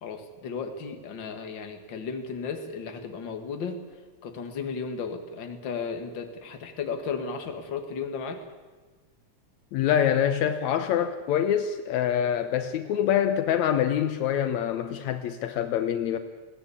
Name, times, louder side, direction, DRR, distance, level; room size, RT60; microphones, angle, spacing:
voice 1, 0.0-3.8 4.2-8.4, left 5 dB, 45° left, 6 dB, 2.3 m, -34 dB
voice 2, 9.7-16.2, left 9 dB, 75° left, 9 dB, 2.2 m, -25 dB
21.0 x 17.0 x 8.6 m, 1.3 s
omnidirectional pair, 3.3 m